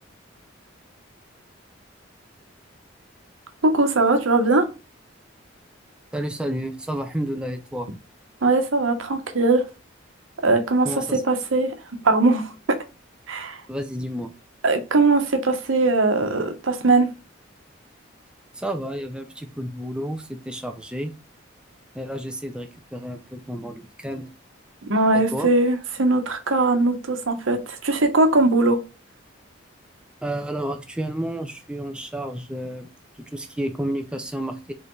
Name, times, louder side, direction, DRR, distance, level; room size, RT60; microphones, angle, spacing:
voice 1, 3.6-4.7 8.4-9.6 10.4-11.7 12.0-12.8 13.3-13.6 14.6-17.1 24.8-28.8, right 2 dB, 80° right, 0.9 m, -20 dB
voice 2, 6.1-7.9 10.8-11.2 13.7-14.3 18.5-21.1 21.9-24.3 25.1-25.5 30.2-32.9 33.2-34.7, right 1 dB, 5° right, 0.4 m, -31 dB
4.4 x 3.4 x 3.1 m
head